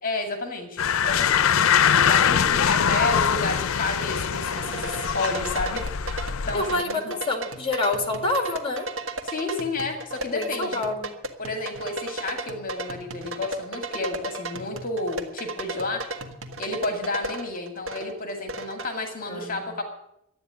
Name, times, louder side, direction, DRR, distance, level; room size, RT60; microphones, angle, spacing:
voice 1, 0.0-1.5 2.1-5.8 6.5-7.2 9.2-10.9 11.4-16.1 16.6-19.8, left 2 dB, 45° left, 4 dB, 2.2 m, -31 dB
sound 1, 0.8-6.8, left 8 dB, 85° left, 0.6 m, -23 dB
sound 2, 4.0-18.9, right 2 dB, 70° right, 1.7 m, -35 dB
voice 2, 6.5-8.9 10.3-11.2 19.3-19.7, left 2 dB, 25° left, 5 dB, 2.2 m, -27 dB
12.0 x 9.5 x 9.9 m, 0.79 s
head